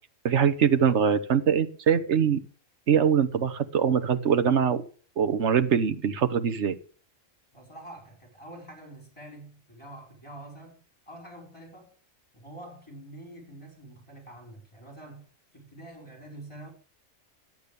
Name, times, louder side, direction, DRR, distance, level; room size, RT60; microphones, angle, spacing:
voice 1, 0.2-2.4 2.9-4.8 5.2-6.8, right 7 dB, 60° right, 1.4 m, -23 dB
voice 2, 7.5-11.9 12.3-16.7, right 1 dB, 20° left, 5.3 m, -46 dB
12.0 x 8.7 x 6.9 m
omnidirectional pair, 1.3 m